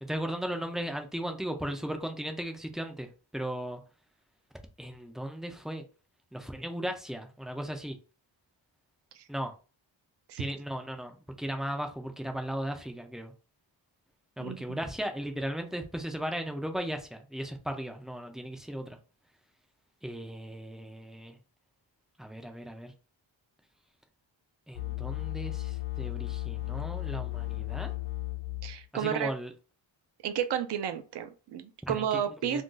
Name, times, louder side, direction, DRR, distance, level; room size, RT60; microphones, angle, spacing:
voice 1, 0.0-3.8 4.8-5.8 6.3-8.0 9.3-9.5 10.4-13.3 14.4-19.0 20.0-21.4 22.2-22.9 24.7-27.9 28.9-29.5 31.9-32.1 32.4-32.6, right 1 dB, ahead, 0.3 m, -36 dB
voice 2, 14.4-14.8 28.6-29.3 30.2-32.6, right 9 dB, 60° right, 0.5 m, -32 dB
sound 1, 24.7-28.8, left 18 dB, 65° left, 0.8 m, -35 dB
2.5 x 2.3 x 3.8 m
wide cardioid pair, 140°, 48 cm